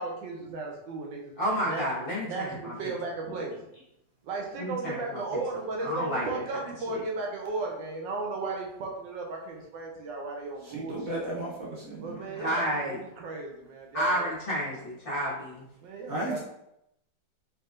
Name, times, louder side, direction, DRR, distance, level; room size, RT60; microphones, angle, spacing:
voice 1, 0.0-1.3 1.6-1.8 2.3-3.5 4.2-11.2 12.0-14.3 15.8-16.4, right 3 dB, 85° right, -1 dB, 1.6 m, -35 dB
voice 2, 1.4-2.9 4.6-5.2 5.8-6.4 6.9-7.0 12.3-13.0 13.9-15.6, equal, 35° left, -7 dB, 1.4 m, -31 dB
voice 3, 10.7-12.2 16.1-16.4, right 1 dB, 60° right, -4 dB, 1.1 m, -34 dB
4.6 x 3.5 x 2.5 m, 0.83 s
omnidirectional pair, 1.9 m